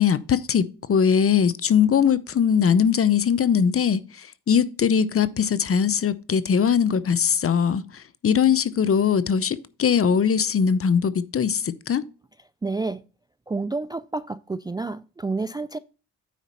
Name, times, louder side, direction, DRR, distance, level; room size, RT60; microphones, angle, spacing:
voice 1, 0.0-12.0, left 7 dB, 40° left, 0.7 m, -21 dB
voice 2, 12.6-13.0 13.5-15.8, right 3 dB, 10° right, 0.3 m, -29 dB
9.3 x 4.1 x 5.4 m
cardioid pair, 75°, 34 cm